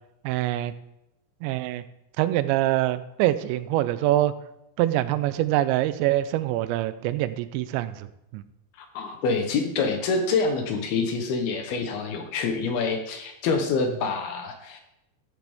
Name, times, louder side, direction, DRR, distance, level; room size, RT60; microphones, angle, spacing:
voice 1, 0.2-0.7 1.4-1.8 2.2-4.3 4.8-8.1 8.3-8.4, right 14 dB, 90° right, 14 dB, 2.9 m, -24 dB
voice 2, 8.8-14.8, left 4 dB, 70° left, 5 dB, 2.7 m, -26 dB
13.0 x 10.5 x 3.6 m, 0.85 s
omnidirectional pair, 5.1 m